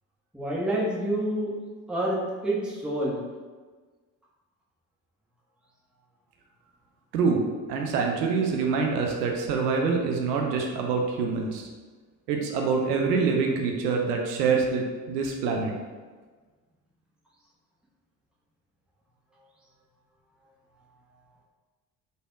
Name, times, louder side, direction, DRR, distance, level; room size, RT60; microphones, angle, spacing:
voice 1, 0.3-1.5 1.9-3.2, right 1 dB, ahead, -5 dB, 0.6 m, -28 dB
voice 2, 7.1-7.4 7.7-11.7 12.3-15.7, right 5 dB, 75° right, 1 dB, 0.5 m, -25 dB
3.3 x 2.2 x 2.4 m, 1.4 s
figure-of-eight pair, 50°, 49 cm